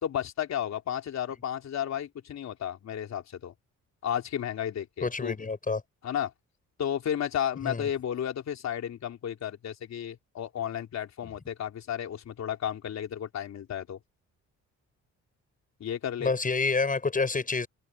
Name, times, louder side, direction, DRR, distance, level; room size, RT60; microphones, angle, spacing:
voice 1, 0.0-3.5 4.0-5.4 6.0-6.3 6.8-14.0 15.8-16.3, left 9 dB, 60° left, 3.7 m, -33 dB
voice 2, 5.0-5.8 7.6-7.9 16.2-17.7, left 4 dB, 25° left, 6.9 m, -28 dB
cardioid pair, 90°, 30 cm